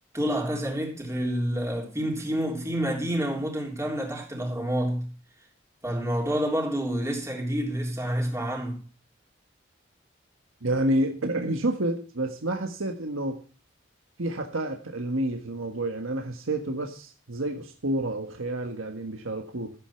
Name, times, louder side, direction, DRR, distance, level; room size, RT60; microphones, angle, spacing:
voice 1, 0.1-5.1 5.8-8.8, equal, 15° right, 3.5 m, -28 dB
voice 2, 10.6-13.4 14.2-19.7, right 1 dB, 85° right, 1.5 m, -29 dB
14.0 x 8.3 x 5.8 m
head